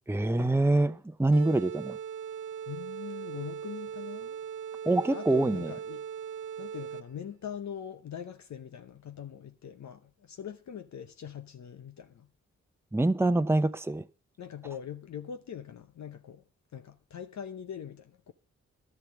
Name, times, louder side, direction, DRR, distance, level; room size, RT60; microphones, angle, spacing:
voice 1, 0.1-2.0 4.8-5.7 12.9-14.0, right 2 dB, 10° right, 0.8 m, -25 dB
sound 1, 1.3-7.3, right 8 dB, 75° right, 0.7 m, -39 dB
voice 2, 2.7-4.4 5.1-6.1 6.6-12.3 14.4-16.4 16.7-18.3, left 8 dB, 65° left, 0.8 m, -42 dB
11.5 x 7.1 x 7.2 m
supercardioid pair, 45°, 30 cm